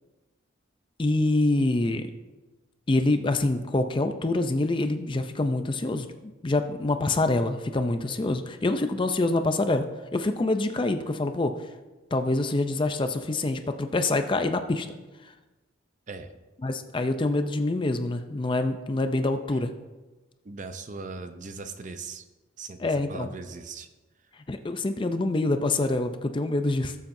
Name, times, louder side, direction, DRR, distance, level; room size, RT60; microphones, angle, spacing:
voice 1, 1.0-2.1 2.9-6.1 6.4-9.9 10.1-11.5 12.1-14.9 16.6-19.7 22.8-23.3 24.5-27.0, left 2 dB, 25° left, 8 dB, 0.4 m, -26 dB
voice 2, 20.4-22.2 22.6-23.9, right 4 dB, 40° right, 9 dB, 0.6 m, -39 dB
18.5 x 7.3 x 2.6 m, 1.2 s
head